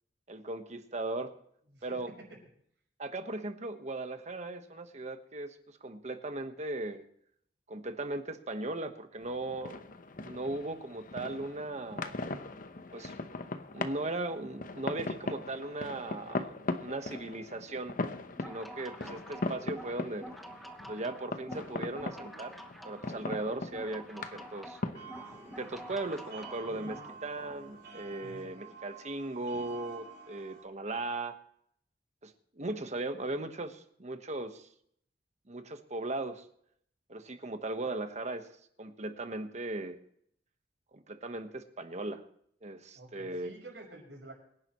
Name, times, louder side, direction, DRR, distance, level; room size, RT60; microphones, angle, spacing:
voice 1, 0.3-1.3 1.8-2.1 3.0-5.5 5.8-7.0 7.7-9.8 10.2-12.2 12.9-13.1 13.7-17.9 18.4-20.3 20.9-22.6 22.8-24.8 25.6-31.4 32.2-34.7 35.5-36.4 37.1-38.5 38.8-40.0 40.9-42.2 42.6-43.5, right 2 dB, 40° right, 8 dB, 1.3 m, -38 dB
voice 2, 1.7-2.3 26.6-27.0 28.2-28.5 42.9-44.3, right 1 dB, 85° right, 0 dB, 6.2 m, -49 dB
sound 1, 9.2-28.5, left 3 dB, 50° left, 0.9 m, -40 dB
sound 2, 18.3-27.2, equal, ahead, 1.1 m, -48 dB
sound 3, 24.9-30.6, right 6 dB, 65° right, 3.3 m, -50 dB
24.5 x 10.5 x 3.1 m, 0.67 s
head